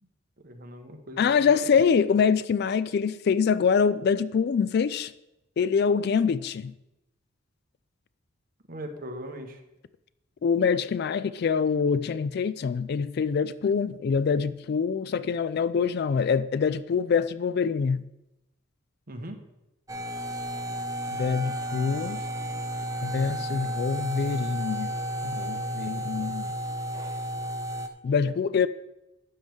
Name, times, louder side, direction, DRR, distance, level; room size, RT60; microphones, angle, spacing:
voice 1, 0.4-1.5 8.7-9.6 19.1-19.4, equal, 45° right, 1.2 m, -39 dB
voice 2, 1.2-5.1 5.6-6.7 10.4-18.0 21.2-22.2 23.0-24.9 25.2-26.5 28.0-28.7, left 6 dB, 50° left, 0.3 m, -25 dB
sound 1, 19.9-27.9, right 1 dB, 15° right, 0.5 m, -32 dB
12.0 x 7.8 x 3.6 m
head